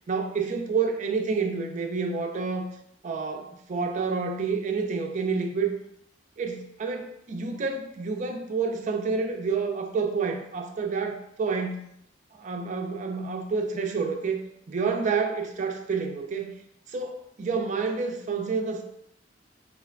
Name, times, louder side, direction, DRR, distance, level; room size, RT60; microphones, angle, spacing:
voice 1, 0.1-2.7 3.0-5.7 6.4-11.9 12.3-14.4 14.7-16.5 16.9-18.8, right 4 dB, 40° right, 3 dB, 0.4 m, -29 dB
4.5 x 2.1 x 2.3 m, 0.75 s
head